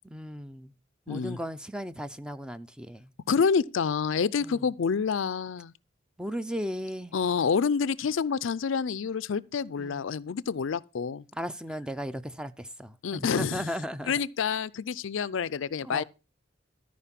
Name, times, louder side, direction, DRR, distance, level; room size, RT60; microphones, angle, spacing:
voice 1, 0.0-0.7 1.1-3.1 4.4-4.7 6.2-7.1 9.8-10.0 11.3-14.1 15.8-16.0, equal, 5° right, 0.5 m, -36 dB
voice 2, 1.1-1.4 3.3-5.7 7.1-11.2 13.0-13.6 14.1-16.0, left 6 dB, 65° left, 0.4 m, -28 dB
13.5 x 5.2 x 5.8 m
head